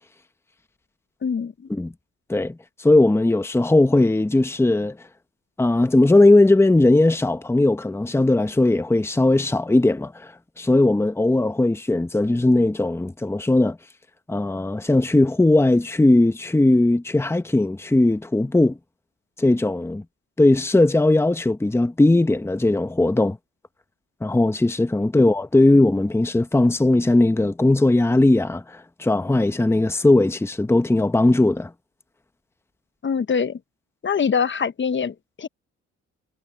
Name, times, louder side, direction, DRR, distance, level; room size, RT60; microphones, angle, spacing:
voice 1, 1.2-1.5 33.0-33.6 34.0-35.5, left 6 dB, 40° left, 1.1 m, -23 dB
voice 2, 2.3-5.0 5.6-13.8 14.3-18.8 19.4-20.0 20.4-23.4 24.2-31.7, left 2 dB, 10° left, 1.1 m, -18 dB
cardioid pair, 90°, 30 cm